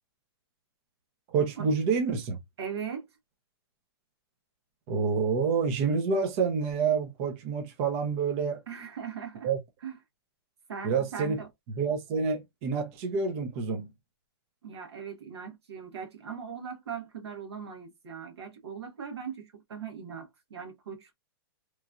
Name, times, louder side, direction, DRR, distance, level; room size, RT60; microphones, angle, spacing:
voice 1, 1.3-2.4 4.9-8.6 9.4-9.6 10.8-11.4 11.7-13.9, right 5 dB, 30° right, 0.5 m, -28 dB
voice 2, 2.6-3.1 8.7-9.5 9.8-9.9 10.7-11.5 14.6-21.1, right 7 dB, 85° right, 1.2 m, -39 dB
3.0 x 2.3 x 2.4 m
hypercardioid pair, 160°, 13 cm